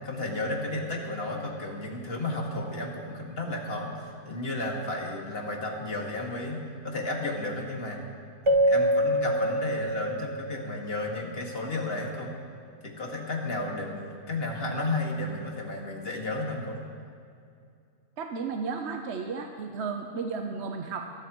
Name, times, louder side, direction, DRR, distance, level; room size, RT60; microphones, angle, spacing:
voice 1, 0.0-8.0 8.5-12.3 12.8-16.8, left 2 dB, 40° left, -1 dB, 2.0 m, -33 dB
Keyboard (musical), 8.5-10.9, right 1 dB, 40° right, 0.4 m, -25 dB
voice 2, 18.2-21.1, right 5 dB, 55° right, 4 dB, 0.9 m, -33 dB
23.5 x 12.0 x 3.0 m, 2.4 s
omnidirectional pair, 1.6 m